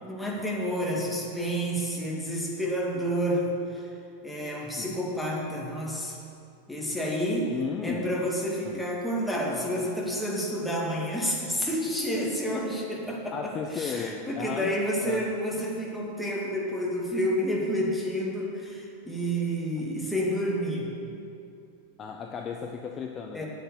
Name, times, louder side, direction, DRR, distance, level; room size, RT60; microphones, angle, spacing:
voice 1, 0.1-3.9 4.2-6.1 6.7-7.5 7.8-20.9 23.3-23.5, equal, 5° left, -3 dB, 2.3 m, -29 dB
voice 2, 7.5-8.2 8.6-8.9 13.3-14.7 15.0-15.3 22.0-23.4, left 6 dB, 25° left, 2 dB, 0.7 m, -35 dB
8.1 x 8.1 x 8.1 m, 2.6 s
figure-of-eight pair, 90°, 0 cm